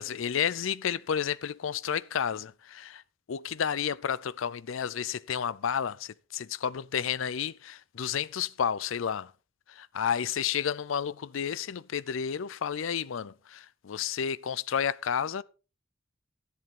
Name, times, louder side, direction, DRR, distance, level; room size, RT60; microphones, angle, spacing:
voice 1, 0.0-3.0 3.3-9.3 9.8-15.4, left 8 dB, 70° left, 0.5 m, -31 dB
12.5 x 10.5 x 3.7 m
head